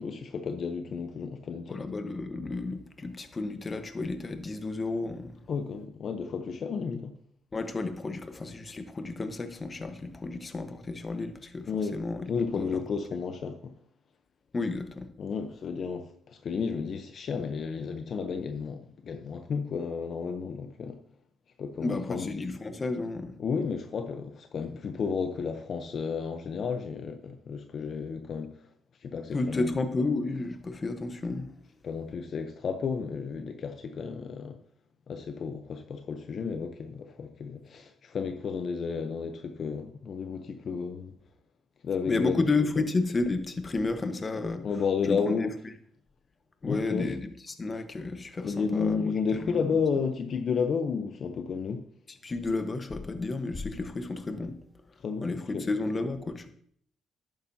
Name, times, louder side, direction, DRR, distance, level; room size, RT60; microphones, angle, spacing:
voice 1, 0.0-1.8 5.5-7.1 11.7-12.0 12.3-13.7 15.2-21.0 21.6-22.3 23.4-28.6 29.0-29.7 31.8-34.6 35.1-41.1 41.8-42.4 44.6-45.5 46.6-47.1 48.4-51.8 55.0-55.7, left 5 dB, 55° left, 7 dB, 0.7 m, -32 dB
voice 2, 1.7-5.4 7.5-12.8 14.5-15.1 21.8-23.4 29.3-31.5 42.1-44.7 45.1-45.4 46.6-49.7 52.2-54.5 55.2-56.5, left 3 dB, 30° left, 8 dB, 1.1 m, -32 dB
11.5 x 8.9 x 2.8 m, 0.63 s
cardioid pair, 90°, 0 cm